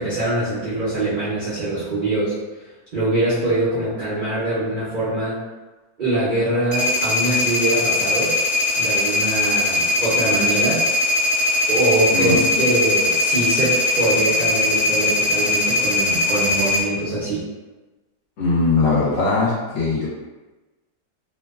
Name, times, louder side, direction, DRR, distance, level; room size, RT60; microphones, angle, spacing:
voice 1, 0.0-2.3 2.9-5.4 6.0-8.4 8.8-10.8 11.7-17.4, right 2 dB, 50° right, -12 dB, 0.5 m, -23 dB
sound 1, 6.7-16.8, left 2 dB, 35° left, 0.8 m, -20 dB
voice 2, 12.1-12.5 18.4-20.1, left 3 dB, 65° left, -7 dB, 1.1 m, -20 dB
2.7 x 2.2 x 2.3 m, 1.2 s
omnidirectional pair, 1.6 m